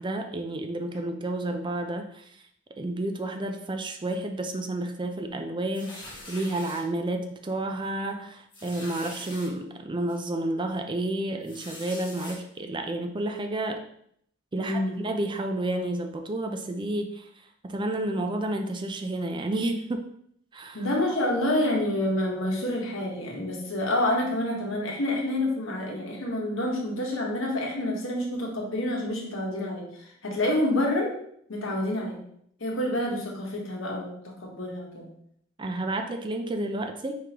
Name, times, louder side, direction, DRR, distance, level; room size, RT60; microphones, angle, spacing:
voice 1, 0.0-2.3 2.8-13.8 14.5-17.3 17.6-20.0 20.5-20.9 30.4-30.5 35.6-37.2, right 1 dB, 25° right, 5 dB, 0.4 m, -31 dB
sound 1, 5.7-6.8 7.4-7.6 7.9-8.0 8.5-9.5 10.1-10.2 11.4-12.4, left 1 dB, 25° left, 1.4 m, -43 dB
voice 2, 14.6-15.0 20.7-29.9 30.2-31.1 31.5-32.2 32.6-35.1, left 1 dB, 70° left, -1 dB, 1.1 m, -28 dB
4.7 x 3.6 x 2.9 m, 0.69 s
head